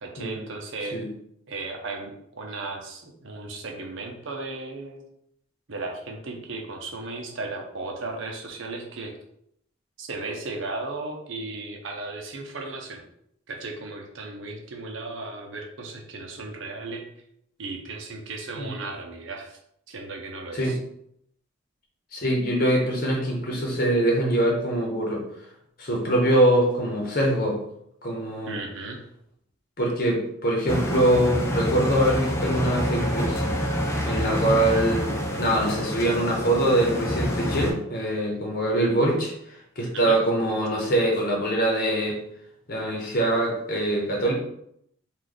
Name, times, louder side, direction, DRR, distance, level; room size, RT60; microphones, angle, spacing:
voice 1, 0.0-1.0 1.5-5.0 5.7-9.1 10.0-13.0 13.5-17.1 17.6-19.6 19.9-20.8 28.5-29.0 39.9-40.2, right 3 dB, 70° right, 2 dB, 0.7 m, -35 dB
voice 2, 22.1-25.2 25.8-27.6 28.0-28.5 29.8-33.4 34.0-35.1 35.4-42.2 42.7-44.3, right 1 dB, 45° left, -1 dB, 1.0 m, -23 dB
sound 1, 30.7-37.7, equal, 15° left, 0.4 m, -27 dB
3.2 x 2.4 x 3.9 m, 0.73 s
head